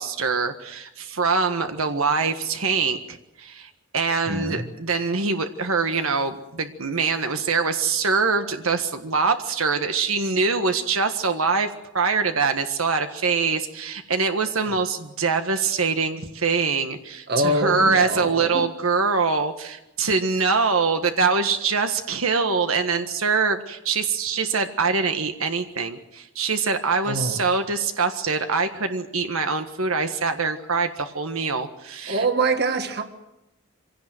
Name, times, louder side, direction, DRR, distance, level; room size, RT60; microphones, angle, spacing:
voice 1, 0.0-32.2, right 4 dB, 85° right, 1.5 m, -24 dB
voice 2, 4.3-4.6 17.3-18.7 27.0-27.4 32.1-33.0, right 2 dB, 50° right, 1.8 m, -24 dB
24.5 x 17.0 x 7.9 m
head